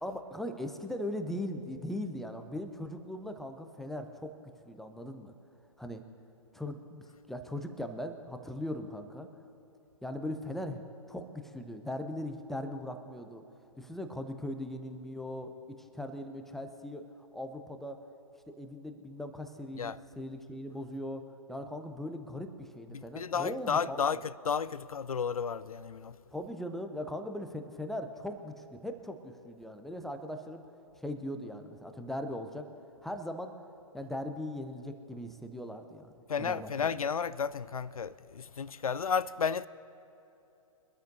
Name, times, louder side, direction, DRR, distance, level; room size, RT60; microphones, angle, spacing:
voice 1, 0.0-4.3 4.7-5.3 5.8-6.0 6.5-9.3 10.0-10.8 11.1-13.4 13.8-18.0 18.6-24.2 26.3-30.6 31.0-32.7 33.0-33.5 33.9-36.1 36.4-37.0, left 1 dB, ahead, 0.6 m, -39 dB
voice 2, 22.9-26.2 36.3-39.7, left 6 dB, 75° left, 0.4 m, -32 dB
23.5 x 13.0 x 2.7 m
figure-of-eight pair, 125°, 18 cm